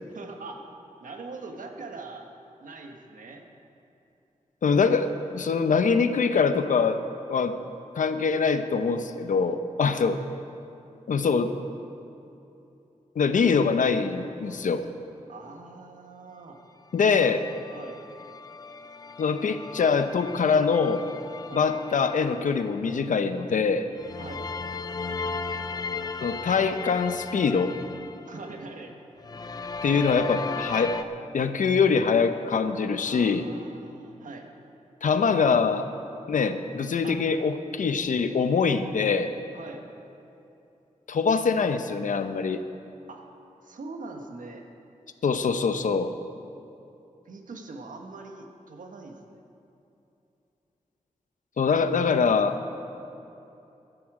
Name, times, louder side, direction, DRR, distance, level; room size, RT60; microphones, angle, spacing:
voice 1, 0.1-0.6 1.0-2.2 2.6-3.5 9.8-10.1 15.3-16.6 17.1-17.3 17.7-18.0 21.5-21.7 24.2-24.5 28.2-28.9 33.1-34.5 37.0-37.2 39.5-39.9 43.1-43.3 43.6-44.6 47.2-49.4, right 3 dB, 85° right, 3 dB, 1.4 m, -42 dB
voice 2, 4.6-7.0 7.3-7.6 8.0-10.2 11.1-11.5 13.2-14.8 16.9-17.4 19.2-21.0 21.5-23.9 26.2-27.7 29.8-31.0 31.3-33.5 35.0-35.9 36.3-39.3 41.1-42.6 45.2-46.1 51.6-52.6, left 5 dB, 75° left, 9 dB, 0.8 m, -24 dB
sound 1, 17.2-22.9 24.0-28.9 29.2-31.0, left 4 dB, 30° left, 0.4 m, -36 dB
15.5 x 12.5 x 4.9 m, 2.8 s
wide cardioid pair, 95°, 13 cm